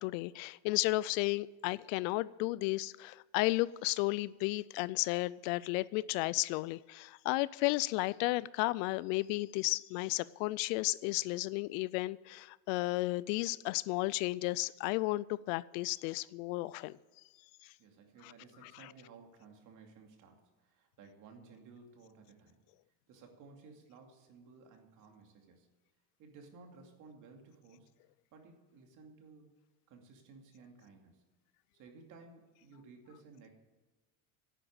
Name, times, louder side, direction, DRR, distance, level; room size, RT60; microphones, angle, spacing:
voice 1, 0.0-17.0, left 20 dB, 70° left, 20 dB, 0.5 m, -33 dB
voice 2, 17.8-22.6 23.1-25.7 26.2-27.9 28.3-29.5 29.9-31.2 31.7-33.5, right 4 dB, 45° right, 3 dB, 2.6 m, -57 dB
11.0 x 8.9 x 8.7 m, 1.3 s
cardioid pair, 155°, 41 cm